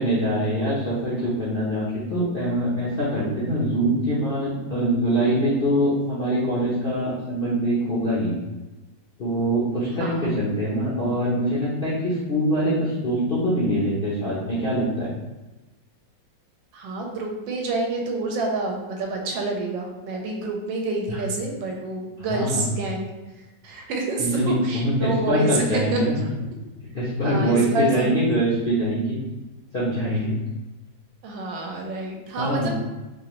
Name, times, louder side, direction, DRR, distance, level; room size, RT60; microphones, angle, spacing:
voice 1, 0.0-8.3 9.2-15.1 21.1-21.2 22.3-22.6 24.2-26.2 26.9-29.1 29.7-30.3 32.4-32.7, equal, 55° left, -8 dB, 0.6 m, -23 dB
voice 2, 16.7-26.0 27.2-28.2 31.2-32.7, right 2 dB, 85° right, 1 dB, 1.4 m, -28 dB
4.4 x 2.5 x 3.0 m, 1.1 s
omnidirectional pair, 2.1 m